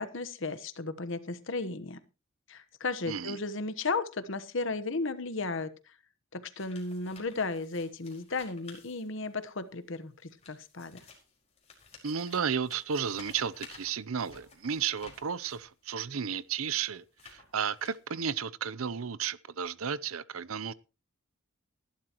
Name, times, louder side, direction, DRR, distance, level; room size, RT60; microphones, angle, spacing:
voice 1, 0.0-2.0 2.5-5.7 6.3-11.0, left 3 dB, 60° left, 1.1 m, -34 dB
sound 1, 6.6-9.5 10.2-15.7 16.4-18.3, left 4 dB, 30° left, 4.9 m, -54 dB
voice 2, 12.0-20.7, right 7 dB, 80° right, 0.7 m, -33 dB
19.5 x 11.5 x 3.0 m
head